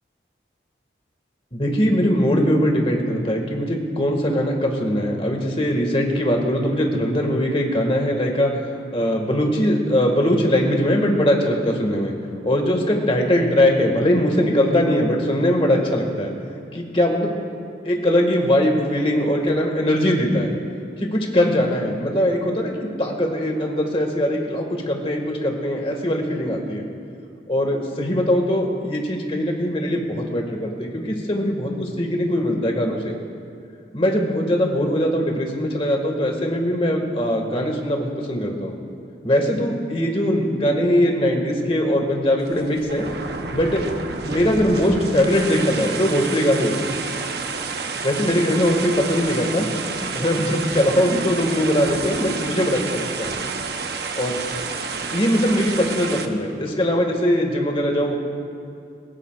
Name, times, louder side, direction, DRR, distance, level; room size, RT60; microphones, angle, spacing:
voice 1, 1.5-8.5 8.9-12.1 12.4-16.3 16.7-17.3 17.8-20.5 21.0-26.8 27.5-33.1 33.9-38.7 39.2-43.1 43.5-43.9 44.2-46.9 48.0-49.7 50.0-53.3 54.1-54.4 55.1-58.2, equal, 30° left, 1 dB, 1.9 m, -21 dB
sound 1, 42.4-56.3, right 4 dB, 60° right, 0.9 m, -30 dB
21.5 x 20.0 x 2.5 m, 2.4 s
head